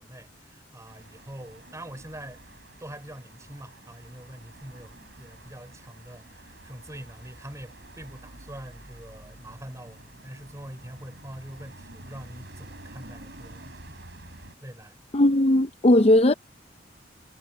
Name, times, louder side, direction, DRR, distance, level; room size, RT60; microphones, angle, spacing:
voice 1, 0.0-2.4 2.8-14.0 14.6-15.0, right 1 dB, 15° right, 4.6 m, -44 dB
dual-carriageway, 0.9-14.6, right 1 dB, 65° right, 4.2 m, -49 dB
voice 2, 15.1-16.3, left 1 dB, 35° left, 0.6 m, -18 dB
head